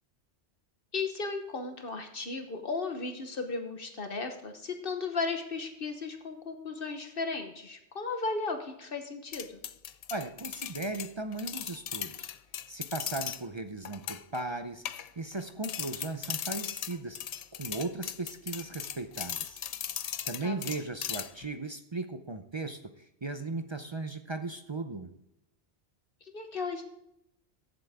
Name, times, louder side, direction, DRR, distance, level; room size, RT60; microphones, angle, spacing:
voice 1, 0.9-9.6 20.4-20.6 26.2-26.8, left 4 dB, 50° left, 6 dB, 1.2 m, -35 dB
sound 1, 9.3-13.4 13.9-14.4 14.9-15.4 15.6-21.5, left 9 dB, 85° left, 0.3 m, -38 dB
voice 2, 10.1-12.3 12.7-17.2 17.5-19.6 20.0-25.1, right 2 dB, 35° right, 9 dB, 0.5 m, -37 dB
15.0 x 7.8 x 3.6 m, 0.83 s
omnidirectional pair, 1.2 m